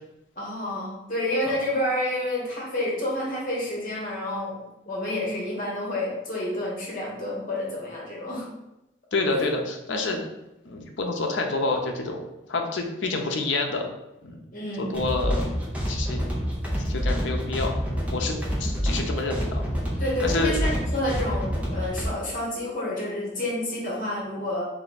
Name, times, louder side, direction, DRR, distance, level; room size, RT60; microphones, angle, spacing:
voice 1, 0.3-8.5 9.3-9.5 14.5-15.0 20.0-24.6, left 1 dB, 45° left, -4 dB, 1.2 m, -29 dB
voice 2, 9.1-10.2 10.6-12.2 12.5-13.9 14.2-14.4 14.8-15.5 15.9-16.3 16.8-17.7 18.1-19.7 20.2-20.5, left 3 dB, 85° left, 3 dB, 0.6 m, -28 dB
sound 1, 14.9-22.1, equal, 10° right, 0.6 m, -27 dB
3.3 x 2.7 x 4.0 m, 0.92 s
head